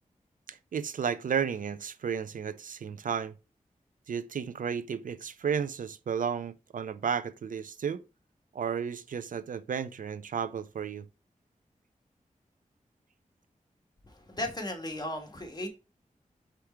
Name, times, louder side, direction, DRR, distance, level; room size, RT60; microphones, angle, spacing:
voice 1, 0.5-3.3 4.1-8.0 8.5-11.1, right 7 dB, 75° right, 0.4 m, -33 dB
voice 2, 14.0-15.7, left 1 dB, 30° left, 1.9 m, -36 dB
5.0 x 4.4 x 4.4 m
cardioid pair, 55°, 14 cm